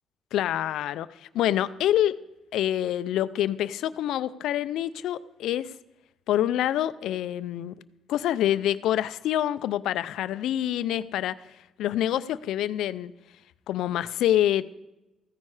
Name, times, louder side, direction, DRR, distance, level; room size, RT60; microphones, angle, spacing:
voice 1, 0.3-2.2 2.5-5.7 6.3-7.7 8.1-11.4 11.8-13.1 13.7-14.6, left 12 dB, 85° left, 15 dB, 0.5 m, -26 dB
15.0 x 9.8 x 4.9 m, 0.97 s
cardioid pair, 90°, 0 cm